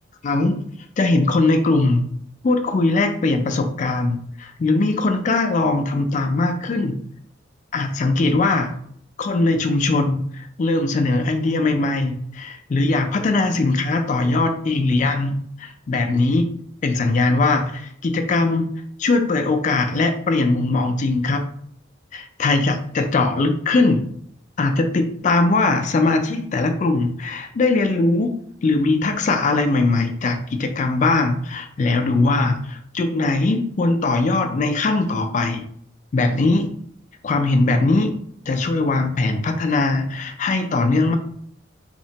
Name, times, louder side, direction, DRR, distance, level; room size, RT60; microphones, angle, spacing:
voice 1, 0.2-0.6 1.0-2.0 2.4-6.9 7.7-8.7 9.2-16.5 16.8-18.7 19.0-21.4 22.1-24.0 24.6-28.3 28.6-35.6 36.1-36.7 37.2-38.1 38.5-41.2, left 3 dB, 40° left, 5 dB, 0.3 m, -20 dB
2.9 x 2.1 x 2.7 m, 0.64 s
head